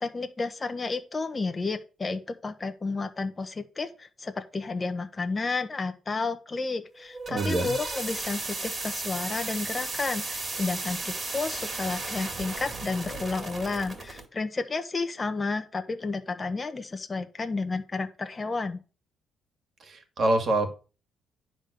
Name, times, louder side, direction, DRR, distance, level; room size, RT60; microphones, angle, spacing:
voice 1, 0.0-18.8, left 3 dB, 25° left, 7 dB, 0.8 m, -31 dB
sound 1, 6.9-14.2, right 3 dB, 30° right, 2.1 m, -35 dB
voice 2, 7.3-7.7 19.8-20.7, right 2 dB, 45° right, 5 dB, 2.0 m, -26 dB
10.0 x 3.8 x 6.8 m, 0.35 s
cardioid pair, 110°, 0 cm